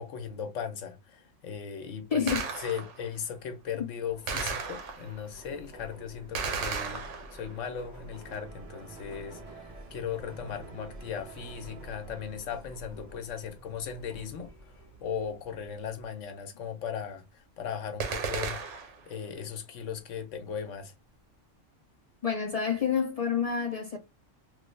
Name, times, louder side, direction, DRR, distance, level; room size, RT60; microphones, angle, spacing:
voice 1, 0.0-2.3 2.6-7.1 7.3-18.6 19.1-20.9, left 7 dB, 85° left, 1.1 m, -38 dB
voice 2, 2.1-2.5 22.2-24.0, left 7 dB, 55° left, 0.4 m, -28 dB
Gunshot gunfire, 2.3-3.1 4.3-5.3 6.3-7.6 18.0-19.1, right 5 dB, 70° right, 1.0 m, -34 dB
Subway metro underground, 4.1-16.1, right 1 dB, 15° right, 1.0 m, -50 dB
sound 1, 8.1-12.7, right 5 dB, 55° right, 0.4 m, -50 dB
3.2 x 2.3 x 3.1 m
omnidirectional pair, 1.3 m